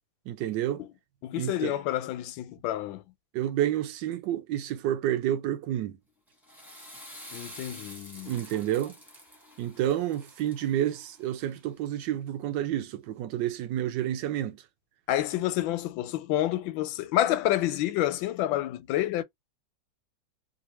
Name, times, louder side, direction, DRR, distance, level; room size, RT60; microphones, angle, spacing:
voice 1, 0.3-0.8 1.4-1.7 3.3-6.0 8.3-8.9 9.6-14.6, right 12 dB, 75° right, 1.2 m, -29 dB
voice 2, 1.2-3.0 7.3-8.3 15.1-19.2, left 13 dB, 85° left, 1.3 m, -28 dB
Water / Toilet flush, 6.3-11.5, equal, ahead, 0.7 m, -48 dB
3.2 x 2.6 x 2.8 m
omnidirectional pair, 2.0 m